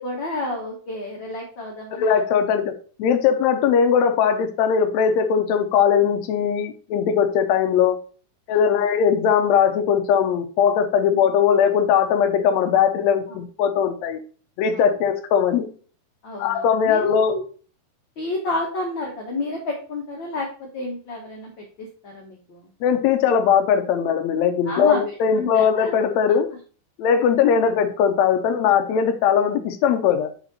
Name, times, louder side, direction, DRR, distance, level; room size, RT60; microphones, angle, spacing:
voice 1, 0.0-2.2 8.5-8.8 11.1-11.2 13.3-13.4 14.7-14.9 16.2-17.4 18.2-21.6 22.0-22.7 24.6-25.0 25.4-26.0, left 2 dB, 60° left, -2 dB, 1.2 m, -30 dB
voice 2, 2.0-2.7 3.0-8.0 8.5-14.2 14.6-15.7 16.4-17.3 22.8-26.5 27.0-30.3, left 7 dB, 85° left, 6 dB, 1.6 m, -19 dB
6.9 x 4.3 x 4.1 m, 0.40 s
omnidirectional pair, 4.1 m